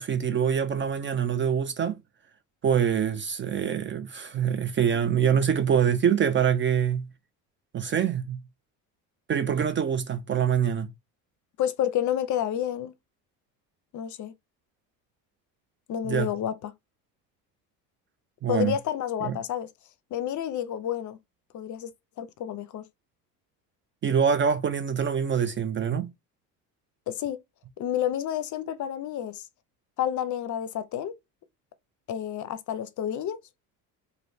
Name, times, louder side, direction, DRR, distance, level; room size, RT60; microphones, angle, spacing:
voice 1, 0.0-2.0 2.6-7.1 7.7-8.4 9.3-10.9 16.0-16.3 18.4-18.8 19.2-19.4 24.0-26.1, right 8 dB, 30° right, 0.4 m, -25 dB
voice 2, 11.6-12.9 13.9-14.3 15.9-16.7 18.5-19.7 20.1-21.2 21.5-21.9 22.2-22.8 27.1-27.4 27.8-29.5 30.0-31.1 32.1-33.4, left 10 dB, 45° left, 0.6 m, -30 dB
3.1 x 2.6 x 2.6 m
hypercardioid pair, 70°, 44 cm